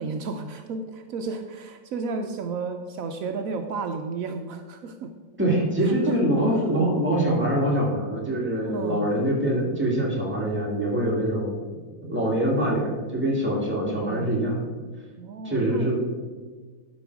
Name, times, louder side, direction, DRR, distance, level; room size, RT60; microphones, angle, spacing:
voice 1, 0.0-5.1 5.8-6.2 8.6-9.1 13.9-14.3 15.2-15.9, right 4 dB, 85° right, 6 dB, 0.7 m, -32 dB
voice 2, 5.4-11.6 12.0-14.7 15.4-16.0, right 1 dB, 5° right, -4 dB, 1.9 m, -24 dB
12.0 x 5.4 x 4.6 m, 1.4 s
omnidirectional pair, 2.1 m